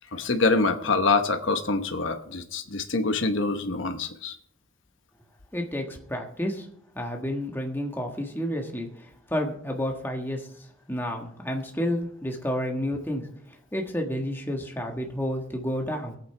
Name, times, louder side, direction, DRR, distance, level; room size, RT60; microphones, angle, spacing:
voice 1, 0.1-4.3, left 3 dB, 65° left, 7 dB, 1.0 m, -25 dB
voice 2, 5.5-6.7 6.9-16.2, equal, 10° left, 2 dB, 1.5 m, -31 dB
23.0 x 8.7 x 3.4 m, 0.67 s
head